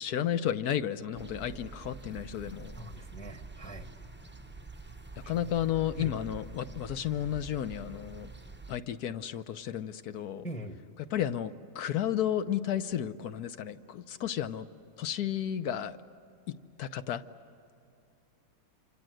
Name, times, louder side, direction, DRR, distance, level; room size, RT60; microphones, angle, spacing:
voice 1, 0.0-2.8 5.3-8.3 8.7-10.4 11.1-14.7 15.0-16.0 16.5-17.2, left 10 dB, 65° left, 12 dB, 1.2 m, -32 dB
sound 1, 1.1-8.8, right 3 dB, 15° right, 0.4 m, -46 dB
voice 2, 2.8-3.9 5.2-5.5 6.0-6.2 10.4-10.8, right 1 dB, 5° left, 7 dB, 1.0 m, -42 dB
27.0 x 26.5 x 7.8 m, 2.5 s
omnidirectional pair, 1.9 m